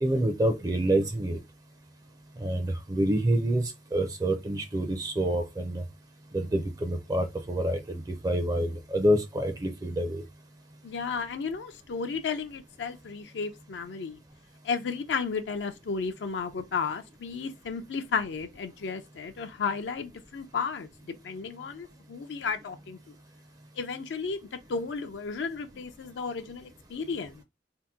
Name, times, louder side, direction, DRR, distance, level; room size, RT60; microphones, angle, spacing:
voice 1, 0.0-1.4 2.4-5.8 6.3-10.2, right 1 dB, 20° right, 0.4 m, -27 dB
voice 2, 10.8-14.2 14.6-23.1 23.8-27.3, left 5 dB, 75° left, 0.4 m, -33 dB
2.8 x 2.1 x 3.5 m
head